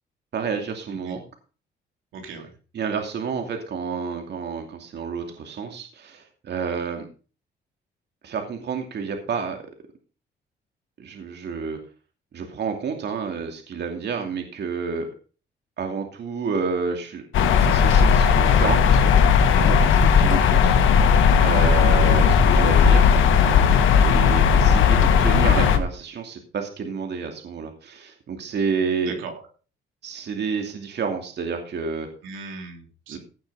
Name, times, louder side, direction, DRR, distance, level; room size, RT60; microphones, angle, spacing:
voice 1, 0.3-1.2 2.7-7.1 8.2-9.6 11.0-11.8 12.3-15.1 15.8-19.1 19.6-21.0 21.4-23.1 23.9-29.2 30.0-32.1 33.1-33.2, right 5 dB, 60° right, 4 dB, 2.7 m, -29 dB
voice 2, 2.1-2.5 20.3-20.6 29.0-29.4 32.2-33.2, right 4 dB, 85° right, 3 dB, 3.3 m, -38 dB
sound 1, 17.3-25.8, left 6 dB, 80° left, 1.8 m, -16 dB
16.5 x 6.3 x 5.5 m, 0.37 s
cardioid pair, 90°, 20 cm